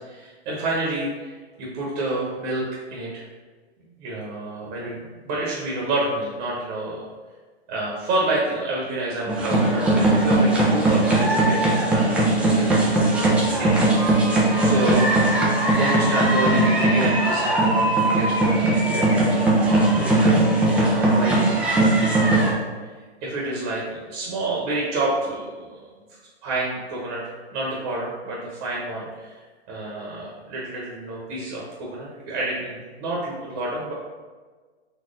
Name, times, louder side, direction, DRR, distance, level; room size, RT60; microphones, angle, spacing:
voice 1, 0.0-3.2 3.8-7.0 7.7-12.7 13.6-13.9 14.6-15.1 15.7-21.8 22.0-22.7 23.2-25.8 26.4-27.2 27.5-29.4 29.7-33.9, right 2 dB, 35° right, -4 dB, 1.1 m, -29 dB
sound 1, 9.3-22.5, right 2 dB, 5° right, 0.4 m, -19 dB
4.1 x 3.0 x 3.8 m, 1.4 s
hypercardioid pair, 130°, 32 cm